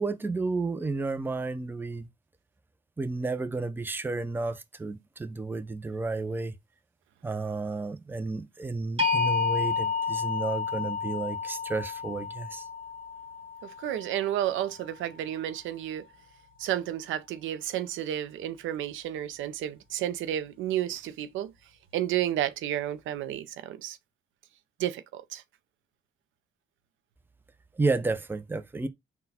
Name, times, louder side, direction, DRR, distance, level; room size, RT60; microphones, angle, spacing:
voice 1, 0.0-2.1 3.0-6.5 7.2-12.6 27.8-28.9, right 3 dB, 10° right, 0.5 m, -31 dB
sound 1, 9.0-15.0, left 5 dB, 25° right, 1.5 m, -31 dB
voice 2, 13.6-16.1 16.6-21.5 21.9-24.0 24.8-25.4, right 12 dB, 80° right, 0.5 m, -31 dB
4.0 x 2.2 x 4.0 m
cardioid pair, 90°, 20 cm